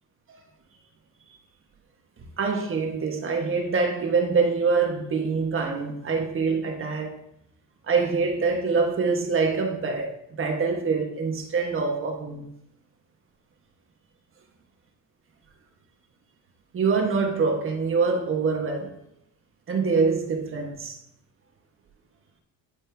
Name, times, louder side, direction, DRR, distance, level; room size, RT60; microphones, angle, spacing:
voice 1, 2.4-7.1 7.8-12.5 16.7-19.0 19.7-21.0, right 4 dB, 30° right, 1.4 m, -25 dB
9.4 x 4.3 x 3.5 m
cardioid pair, 115°, 40 cm